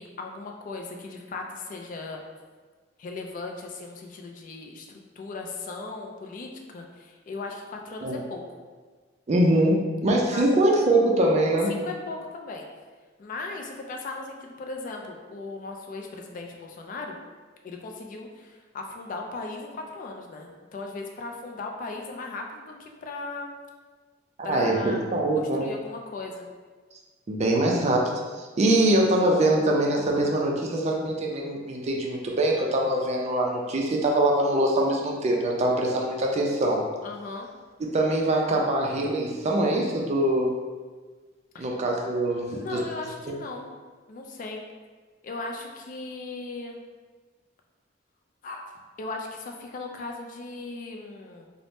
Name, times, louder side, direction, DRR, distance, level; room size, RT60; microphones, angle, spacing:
voice 1, 0.0-2.2 3.0-4.9 5.2-8.6 10.3-10.4 11.7-12.7 13.2-17.2 17.6-23.5 24.4-25.1 25.3-26.5 37.0-37.5 41.5-41.7 42.5-43.7 44.1-44.6 45.2-46.8 48.4-48.7 49.0-51.5, left 3 dB, 45° left, 2 dB, 0.3 m, -37 dB
voice 2, 9.3-11.7 24.4-25.7 27.3-36.8 37.8-40.5 41.6-42.8, right 1 dB, 35° right, 0 dB, 0.4 m, -23 dB
2.6 x 2.0 x 3.3 m, 1.4 s
head